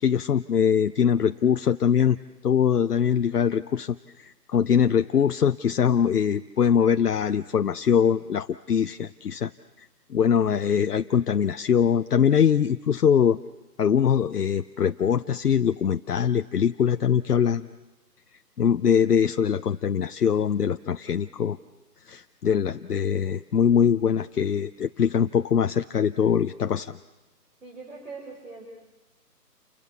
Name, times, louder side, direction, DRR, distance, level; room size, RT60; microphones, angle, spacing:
voice 1, 0.0-2.2 2.4-9.5 9.8-13.4 13.8-17.7 18.6-21.6 22.1-26.9, left 8 dB, 70° left, 9 dB, 0.8 m, -22 dB
voice 2, 27.6-28.7, right 4 dB, 55° right, -3 dB, 6.9 m, -41 dB
29.5 x 24.5 x 7.1 m, 1.1 s
hypercardioid pair, 165°, 48 cm